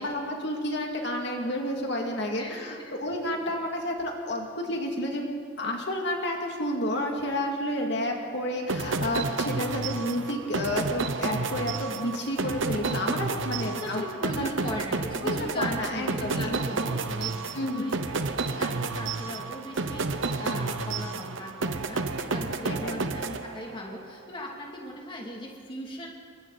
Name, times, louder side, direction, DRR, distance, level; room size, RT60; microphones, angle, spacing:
voice 1, 0.0-5.2 5.6-14.0 14.3-14.5 15.2-16.6 17.5-18.0 22.8-23.0, left 1 dB, 60° left, 1 dB, 2.4 m, -30 dB
sound 1, 8.7-24.0, right 3 dB, 75° right, 1.0 m, -31 dB
voice 2, 13.6-17.9 18.3-26.1, left 1 dB, 25° left, -1 dB, 2.6 m, -38 dB
27.5 x 23.5 x 4.1 m, 2.1 s
head